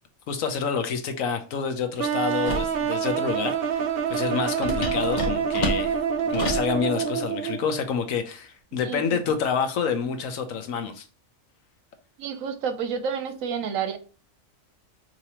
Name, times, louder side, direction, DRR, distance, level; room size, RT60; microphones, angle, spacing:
voice 1, 0.3-6.0 6.3-11.1, left 6 dB, 90° left, 1.2 m, -28 dB
sound 1, 2.0-7.8, right 7 dB, 55° right, 0.7 m, -27 dB
sound 2, 2.4-2.8 4.6-6.7, left 1 dB, 35° left, 1.0 m, -29 dB
voice 2, 8.8-9.2 12.2-14.0, right 6 dB, 90° right, 1.1 m, -29 dB
5.0 x 3.0 x 2.9 m
omnidirectional pair, 1.4 m